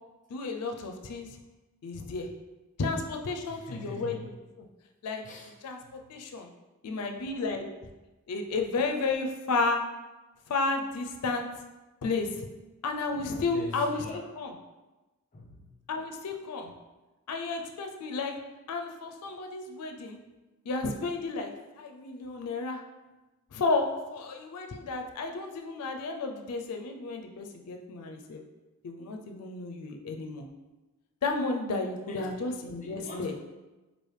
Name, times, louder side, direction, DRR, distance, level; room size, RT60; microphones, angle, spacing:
voice 1, 0.3-1.4 1.8-2.3 2.8-4.4 5.0-5.2 5.6-6.5 6.8-7.7 8.3-9.8 10.5-11.5 12.0-12.5 12.8-14.0 14.4-14.5 15.9-16.7 17.3-18.3 18.7-20.2 20.7-21.5 21.8-22.8 23.5-28.4 28.8-30.5 31.2-33.3, left 3 dB, 90° left, 4 dB, 0.4 m, -32 dB
voice 2, 3.5-4.3 5.2-5.5 5.8-6.0 13.5-14.2 15.3-15.7 32.1-32.5 32.8-33.3, left 1 dB, 35° left, 0 dB, 0.6 m, -42 dB
4.6 x 2.5 x 3.2 m, 1.1 s
head